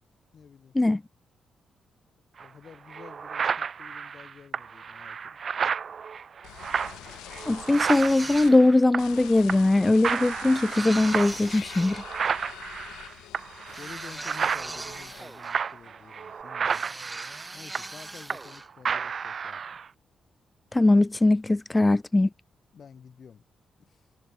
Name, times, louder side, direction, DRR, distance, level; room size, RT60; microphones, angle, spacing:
voice 1, 0.3-0.8 2.4-5.4 13.8-19.8 22.7-23.4 23.8-24.1, left 6 dB, 60° left, 4.8 m, -50 dB
sound 1, 2.4-2.5 2.9-9.2 9.5-9.8 10.0-18.6 18.8-19.9, right 6 dB, 55° right, 1.6 m, -32 dB
sound 2, 6.4-8.5 9.0-15.5 15.8-16.4, left 15 dB, 85° left, 1.8 m, -45 dB
voice 2, 7.5-12.0 20.7-22.3, left 2 dB, 20° left, 0.3 m, -21 dB
sound 3, 7.7-8.9 10.7-12.1 13.7-15.7 16.7-18.7, right 2 dB, 20° right, 2.2 m, -40 dB
hypercardioid pair, 45°, 0 cm